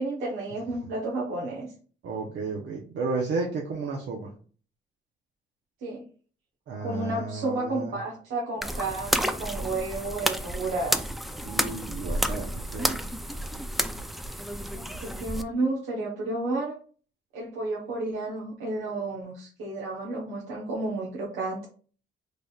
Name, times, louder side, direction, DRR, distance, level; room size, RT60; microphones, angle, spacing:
voice 1, 0.0-1.7 5.8-6.0 6.8-11.1 14.7-16.8 17.3-21.7, right 2 dB, 90° right, -4 dB, 1.0 m, -31 dB
voice 2, 2.0-4.3 6.7-7.9 11.4-13.0, right 4 dB, 65° right, -1 dB, 0.8 m, -33 dB
sound 1, 8.6-15.4, equal, ahead, 0.3 m, -30 dB
4.0 x 3.4 x 2.3 m, 0.41 s
cardioid pair, 90°, 20 cm